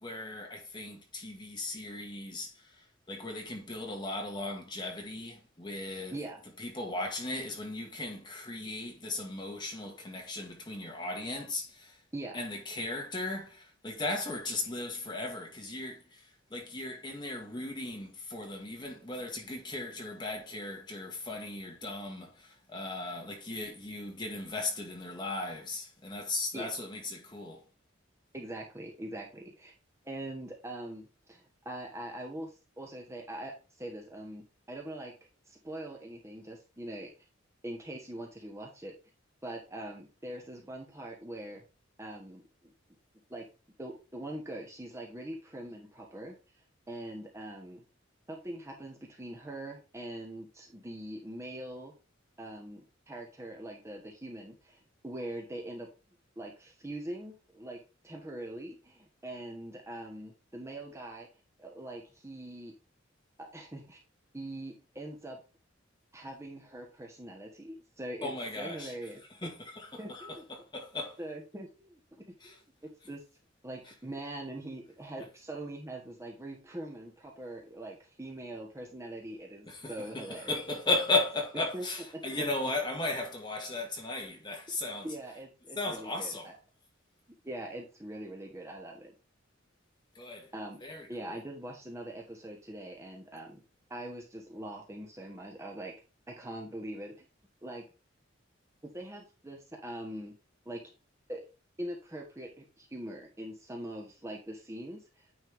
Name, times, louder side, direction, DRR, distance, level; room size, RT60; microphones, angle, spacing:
voice 1, 0.0-2.5 3.1-6.1 6.6-11.9 12.3-16.2 16.5-27.6 68.2-68.9 69.4-71.2 72.4-72.5 79.7-85.1 85.7-86.5 90.1-90.5 90.8-91.1, left 2 dB, 25° left, 1.8 m, -36 dB
voice 2, 28.3-29.7 30.0-32.5 32.8-33.5 33.8-35.1 35.5-37.1 37.6-38.9 39.4-41.6 42.0-42.7 43.3-43.4 43.8-46.3 46.9-47.8 48.3-51.9 52.4-55.9 56.4-57.8 58.0-61.3 61.6-62.7 63.4-64.0 64.3-65.4 66.1-69.5 70.0-70.5 71.2-72.6 73.0-73.2 73.6-80.5 81.7-81.8 82.1-82.4 85.0-86.5 87.4-89.1 90.5-90.8 91.1-93.6 93.9-95.9 96.3-97.3 97.6-97.8 98.8-100.3 100.6-100.8 101.3-101.4 101.8-105.0, right 1 dB, 15° right, 1.1 m, -42 dB
9.4 x 4.3 x 3.5 m
head